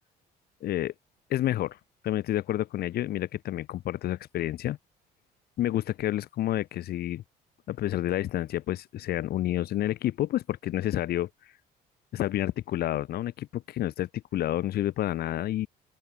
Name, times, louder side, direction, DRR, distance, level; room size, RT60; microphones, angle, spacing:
voice 1, 0.6-0.9 1.3-1.8 2.0-4.8 5.6-7.2 7.7-11.3 12.1-15.7, left 13 dB, 65° left, 3.8 m, -29 dB
open air
cardioid pair, 110°, 17 cm